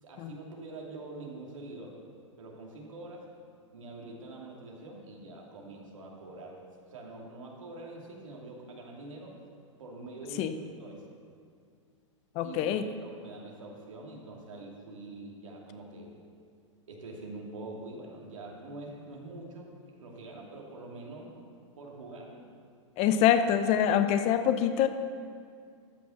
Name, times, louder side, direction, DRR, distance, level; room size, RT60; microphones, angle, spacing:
voice 1, 0.0-2.0 2.4-3.3 3.7-6.6 6.9-9.4 9.8-11.0 12.4-16.2 16.9-21.3 21.8-22.4, right 2 dB, 80° right, -2 dB, 2.6 m, -45 dB
voice 2, 12.3-12.8 23.0-24.9, left 9 dB, 40° left, 10 dB, 0.7 m, -25 dB
13.5 x 6.1 x 7.1 m, 2.2 s
hypercardioid pair, 115°, 16 cm